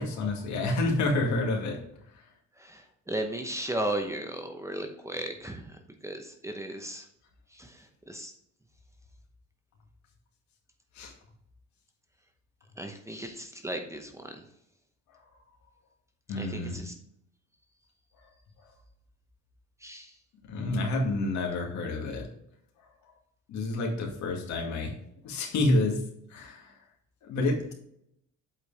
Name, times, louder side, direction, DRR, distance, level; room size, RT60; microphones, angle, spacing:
voice 1, 0.0-1.8 11.0-11.1 16.3-16.8 20.5-22.3 23.5-24.9 25.2-26.0 26.3-26.7 27.3-27.7, left 2 dB, 70° left, 1 dB, 2.1 m, -28 dB
voice 2, 3.1-5.6 6.0-7.0 7.6-7.7 8.1-8.3 12.8-14.4 16.4-16.9 19.8-20.1, right 1 dB, 10° right, 4 dB, 0.8 m, -35 dB
8.2 x 4.7 x 3.3 m, 0.74 s
cardioid pair, 120°, 30 cm